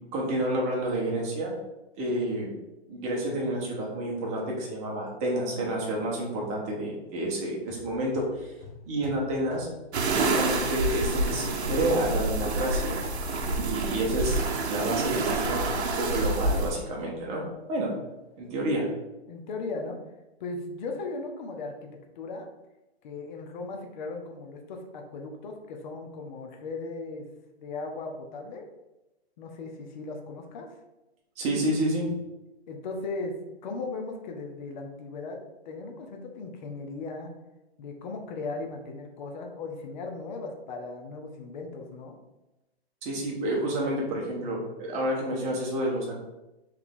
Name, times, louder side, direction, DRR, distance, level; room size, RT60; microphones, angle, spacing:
voice 1, 0.1-1.5 1.9-2.6 2.9-8.5 8.9-9.7 10.1-13.0 13.6-17.4 17.7-17.9 18.4-18.9 31.4-32.1 43.0-46.2, right 1 dB, 20° right, -2 dB, 0.9 m, -29 dB
sound 1, 7.7-10.9 11.3-12.7 13.0-17.2, left 1 dB, 60° left, 1.3 m, -45 dB
sound 2, 9.9-16.7, right 2 dB, 80° right, 0.8 m, -28 dB
voice 2, 19.3-20.0 20.4-21.9 22.2-22.5 23.0-27.3 27.6-28.7 29.4-30.7 32.7-33.3 33.6-35.4 35.7-37.3 37.8-42.2, left 3 dB, 45° left, 2 dB, 0.7 m, -37 dB
3.4 x 3.3 x 3.6 m, 1.0 s
hypercardioid pair, 145°, 33 cm